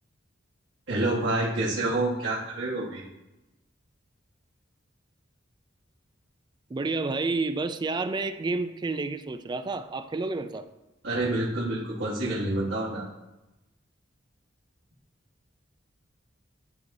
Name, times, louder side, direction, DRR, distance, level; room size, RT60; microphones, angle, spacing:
voice 1, 0.9-3.0 11.0-13.0, right 2 dB, 80° right, -8 dB, 1.4 m, -28 dB
voice 2, 6.7-10.7, right 3 dB, 25° right, 10 dB, 0.3 m, -30 dB
11.5 x 4.0 x 2.7 m, 0.99 s
head